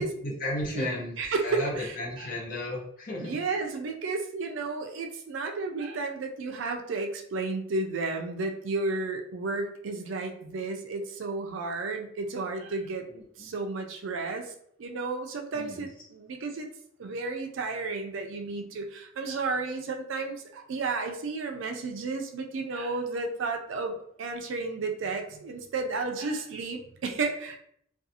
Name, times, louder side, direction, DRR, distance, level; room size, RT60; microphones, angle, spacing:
voice 1, 0.0-1.2 1.4-3.4 13.1-13.5 15.5-15.9, left 1 dB, 45° left, -2 dB, 0.7 m, -34 dB
voice 2, 0.7-2.3 3.2-13.0 13.4-14.5 14.8-16.7 17.0-27.6, right 3 dB, 70° right, 3 dB, 0.4 m, -32 dB
2.5 x 2.3 x 2.7 m, 0.68 s
head